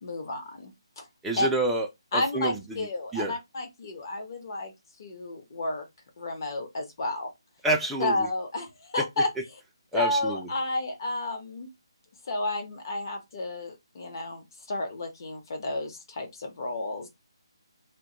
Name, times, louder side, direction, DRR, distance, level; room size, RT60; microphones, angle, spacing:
voice 1, 0.0-1.1 1.4-1.5 2.1-4.7 5.0-5.9 6.2-7.3 8.0-9.6 9.9-11.7 12.3-17.1, left 2 dB, 45° left, 0.8 m, -31 dB
voice 2, 1.2-1.9 2.1-2.8 3.1-3.3 7.6-8.1 9.9-10.4, right 1 dB, 5° right, 0.3 m, -27 dB
2.2 x 2.0 x 2.8 m
figure-of-eight pair, 155°, 3 cm